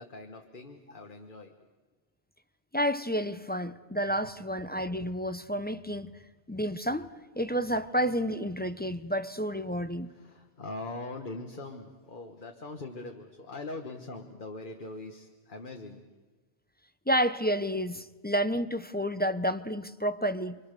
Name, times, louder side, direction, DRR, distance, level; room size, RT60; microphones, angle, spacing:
voice 1, 0.0-1.5 10.1-16.0, left 2 dB, 45° left, 1.6 m, -42 dB
voice 2, 2.7-6.1 6.5-7.1 7.4-10.1 17.1-20.6, equal, 10° left, 0.5 m, -30 dB
29.5 x 24.0 x 6.7 m
omnidirectional pair, 1.2 m